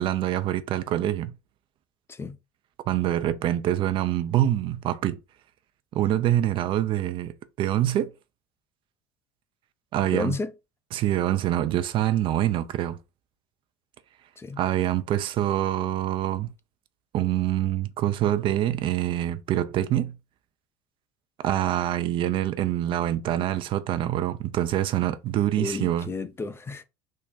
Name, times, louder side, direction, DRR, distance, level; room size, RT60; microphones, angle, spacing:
voice 1, 0.0-1.3 2.9-5.2 5.9-8.1 9.9-10.4 10.9-13.0 14.6-16.5 17.1-20.2 21.4-26.1, right 12 dB, 50° right, 0.4 m, -25 dB
voice 2, 10.1-10.5 14.4-14.6 25.6-26.8, left 3 dB, 20° left, 0.5 m, -32 dB
3.7 x 2.2 x 3.8 m
hypercardioid pair, 70°, 11 cm